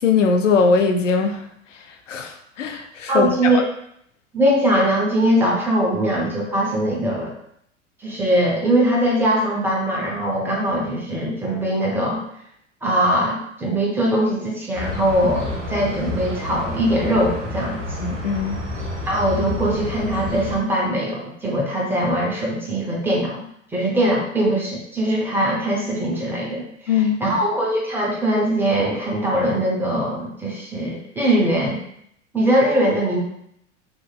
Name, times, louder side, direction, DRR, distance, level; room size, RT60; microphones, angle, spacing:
voice 1, 0.0-1.4 1.7-1.8 2.1-3.6 18.0-18.6 26.9-27.2, left 5 dB, 75° left, 5 dB, 0.5 m, -20 dB
voice 2, 3.1-3.6 4.3-7.3 8.0-12.2 12.8-18.0 19.0-23.4 23.7-26.6 27.2-31.8 32.3-33.2, right 1 dB, 5° right, -3 dB, 0.4 m, -21 dB
sound 1, 14.7-20.6, left 1 dB, 75° right, 0.8 m, -29 dB
2.8 x 2.5 x 2.2 m, 0.71 s
figure-of-eight pair, 85°, 38 cm